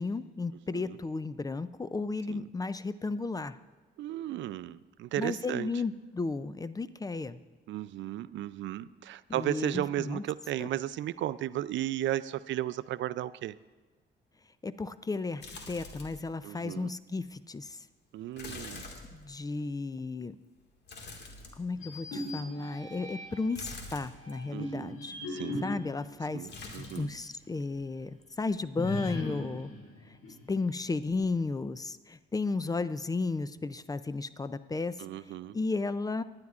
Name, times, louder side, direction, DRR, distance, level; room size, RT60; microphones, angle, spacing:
voice 1, 0.0-3.6 5.2-7.4 9.3-10.2 10.6-10.7 14.6-17.8 19.1-20.4 21.6-25.1 25.6-29.7 30.1-30.2 30.5-35.0 35.5-36.2, left 3 dB, 20° left, 14 dB, 0.4 m, -34 dB
voice 2, 4.0-5.7 7.7-13.6 16.4-16.9 18.1-18.9 24.5-25.0 25.3-25.7 26.3-27.1 35.0-35.6, right 13 dB, 70° right, 17 dB, 0.4 m, -35 dB
sound 1, 15.4-16.3 16.7-16.8 18.4-19.6 20.9-22.0 23.5-24.4 26.5-27.2 27.4-28.1 28.4-28.5, left 3 dB, 60° left, 1.9 m, -45 dB
sound 2, 21.7-23.6 24.2-27.2 27.5-27.6 28.7-30.8, left 1 dB, 80° left, 2.6 m, -39 dB
19.0 x 10.5 x 2.5 m, 1.3 s
cardioid pair, 90°, 20 cm